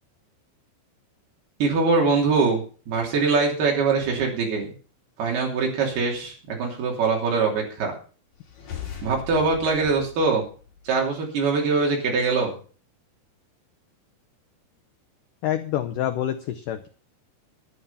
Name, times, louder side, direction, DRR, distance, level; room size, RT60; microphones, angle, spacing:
voice 1, 1.6-4.7 5.2-7.9 9.0-10.4 10.8-12.5, right 4 dB, 65° right, 0 dB, 4.9 m, -23 dB
sound 1, 8.3-11.1, left 8 dB, 45° left, 3.6 m, -39 dB
voice 2, 15.4-16.9, left 11 dB, 85° left, 8 dB, 1.8 m, -27 dB
11.0 x 11.0 x 5.6 m, 0.39 s
omnidirectional pair, 4.9 m